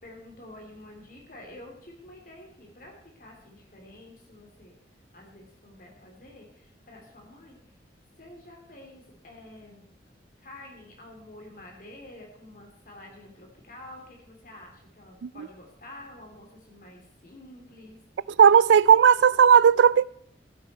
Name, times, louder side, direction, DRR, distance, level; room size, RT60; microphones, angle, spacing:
voice 1, 0.0-4.7 5.1-7.6 8.2-9.9 10.4-18.0, left 1 dB, 50° left, 3.3 m, -48 dB
voice 2, 18.4-20.0, right 7 dB, 90° right, 0.4 m, -16 dB
15.5 x 9.1 x 4.4 m
head